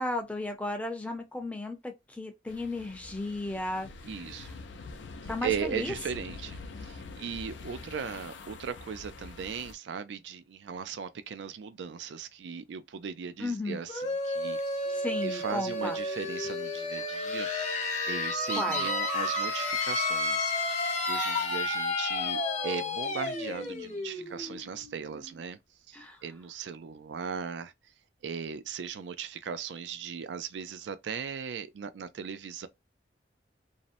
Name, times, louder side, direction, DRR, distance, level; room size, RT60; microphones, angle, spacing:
voice 1, 0.0-3.9 5.3-5.9 13.4-13.8 15.0-16.0 18.6-18.9 25.9-26.2, left 2 dB, 10° left, 0.5 m, -34 dB
sound 1, 2.5-9.7, left 3 dB, 85° left, 0.4 m, -45 dB
voice 2, 4.0-4.6 5.4-20.5 21.0-25.6 25.9-27.7 28.2-32.7, right 7 dB, 80° right, 0.4 m, -38 dB
sound 2, 13.9-25.4, left 2 dB, 40° left, 0.8 m, -31 dB
2.6 x 2.0 x 2.5 m
head